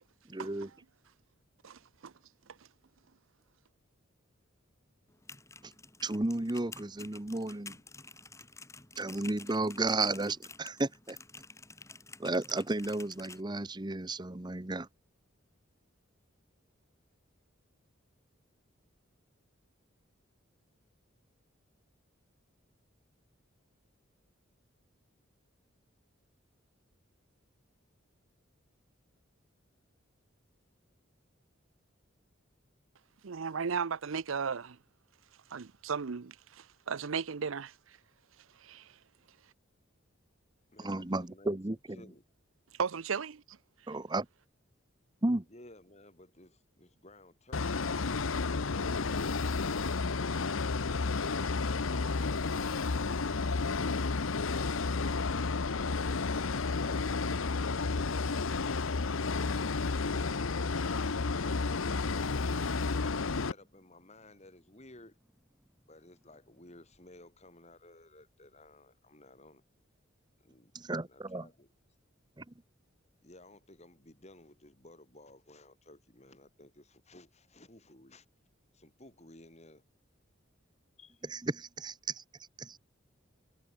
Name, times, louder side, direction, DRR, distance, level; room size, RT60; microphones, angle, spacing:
voice 1, 0.3-0.7 5.6-5.7 6.0-7.8 9.0-11.2 12.2-14.9 40.8-42.0 43.9-44.3 45.2-45.5 70.7-71.4 72.4-72.5 81.3-82.2 82.6-82.8, right 2 dB, 20° right, 0.9 m, -33 dB
voice 2, 1.6-2.1 33.2-34.8 35.5-37.7 38.6-38.9 42.8-43.6, right 6 dB, 85° right, 0.7 m, -35 dB
sound 1, 5.1-13.4, left 3 dB, 15° left, 5.7 m, -51 dB
voice 3, 40.7-42.2 45.5-48.0 61.3-65.2 65.9-69.6 70.4-70.7 71.0-71.7 73.2-78.3 78.7-79.8 81.0-81.3, left 1 dB, 35° left, 7.7 m, -56 dB
sound 2, 47.5-63.5, left 4 dB, 85° left, 0.9 m, -31 dB
sound 3, 54.5-67.5, equal, 5° right, 6.1 m, -61 dB
head